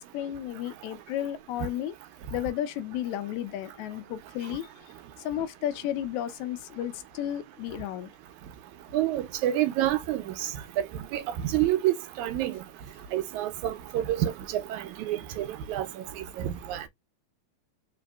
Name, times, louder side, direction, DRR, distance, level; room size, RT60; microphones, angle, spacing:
voice 1, 0.0-2.0 2.3-4.9 5.2-8.1, left 11 dB, 80° left, 1.8 m, -33 dB
voice 2, 8.9-10.3 10.8-10.9 11.1-12.5 13.1-15.9 16.4-16.8, right 13 dB, 80° right, 2.1 m, -28 dB
4.8 x 3.4 x 2.2 m
omnidirectional pair, 3.4 m